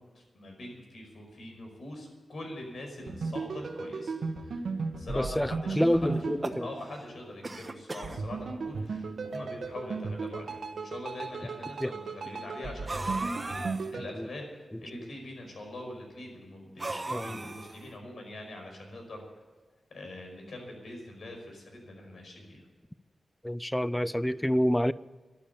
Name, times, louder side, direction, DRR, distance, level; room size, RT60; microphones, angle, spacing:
voice 1, 0.0-4.2 4.4-4.6 5.0-6.1 6.6-19.2 19.9-22.6, left 1 dB, 70° left, 5.2 m, -43 dB
sound 1, 3.0-7.3 8.0-14.1, right 4 dB, 70° right, 1.5 m, -36 dB
voice 2, 5.1-6.7 11.8-11.9 14.2-14.3 14.7-15.1 16.9-17.5 23.4-24.9, equal, 5° left, 0.4 m, -28 dB
sound 2, 6.2-7.0 7.4-8.2 9.0-9.1 9.3-9.4 10.4-10.5 12.9-13.9 16.8-17.9, right 2 dB, 30° right, 1.1 m, -36 dB
12.5 x 11.5 x 8.6 m
wide cardioid pair, 115°, 0 cm